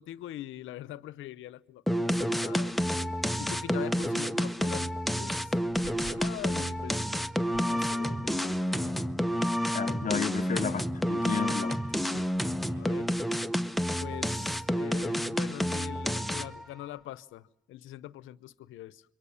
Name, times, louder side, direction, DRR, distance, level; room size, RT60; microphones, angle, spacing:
voice 1, 0.0-3.1 3.4-5.5 5.8-7.1 7.6-9.1 12.0-12.4 12.7-13.1 14.0-19.0, left 14 dB, 85° left, 0.9 m, -43 dB
sound 1, 1.9-16.7, equal, ahead, 1.0 m, -29 dB
sound 2, 5.6-17.2, right 1 dB, 55° right, 5.1 m, -56 dB
voice 2, 9.7-11.8, left 7 dB, 40° left, 0.9 m, -32 dB
27.0 x 24.0 x 7.0 m
cardioid pair, 90°, 20 cm